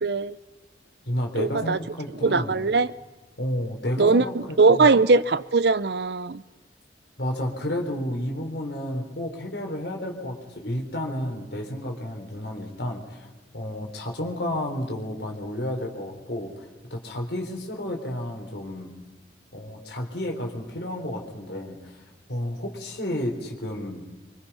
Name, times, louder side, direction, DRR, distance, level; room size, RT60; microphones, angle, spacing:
voice 1, 0.0-0.4 1.4-1.8 2.2-2.9 4.0-6.4, right 4 dB, 65° right, 16 dB, 0.7 m, -20 dB
voice 2, 1.1-2.6 3.4-4.9 7.2-18.9 19.5-22.0 22.3-24.0, left 1 dB, 70° left, 2 dB, 3.9 m, -31 dB
24.5 x 24.5 x 5.7 m, 1.2 s
head